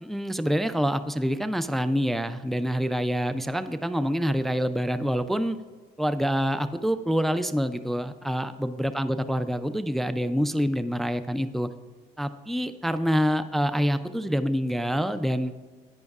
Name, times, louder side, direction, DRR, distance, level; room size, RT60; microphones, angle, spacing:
voice 1, 0.0-5.6 6.0-11.7 12.2-15.5, equal, ahead, 11 dB, 0.3 m, -26 dB
10.5 x 9.3 x 2.4 m, 1.5 s
cardioid pair, 110°, 17 cm